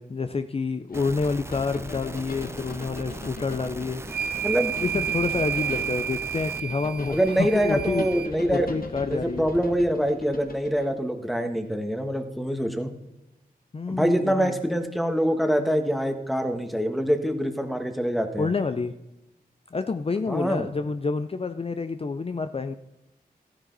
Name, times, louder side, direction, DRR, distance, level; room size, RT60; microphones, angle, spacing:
voice 1, 0.0-4.0 4.3-4.5 4.8-8.1 8.5-9.5 13.7-14.5 18.4-19.0 19.7-22.7, left 4 dB, 35° left, 9 dB, 0.5 m, -28 dB
sound 1, 0.9-10.9, left 3 dB, 65° left, 1.5 m, -40 dB
sound 2, 0.9-6.6, right 2 dB, 15° right, 0.6 m, -39 dB
sound 3, 4.0-8.3, right 9 dB, 85° right, 0.7 m, -31 dB
voice 2, 7.1-12.9 13.9-18.5 20.3-20.7, equal, ahead, 7 dB, 1.5 m, -25 dB
14.0 x 10.0 x 4.0 m, 0.94 s
wide cardioid pair, 70°, 16 cm